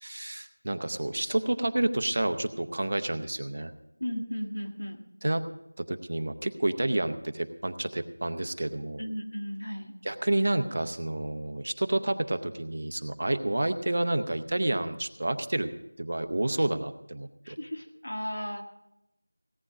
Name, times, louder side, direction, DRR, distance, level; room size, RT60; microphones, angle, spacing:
voice 1, 0.0-3.7 5.2-5.4 5.8-9.0 10.0-15.7 16.0-17.6, right 1 dB, 35° right, 9 dB, 0.6 m, -29 dB
voice 2, 4.0-5.0 9.0-10.0 17.4-18.6, equal, 90° left, 4 dB, 1.8 m, -35 dB
17.0 x 8.9 x 5.0 m, 0.88 s
figure-of-eight pair, 180°, 0 cm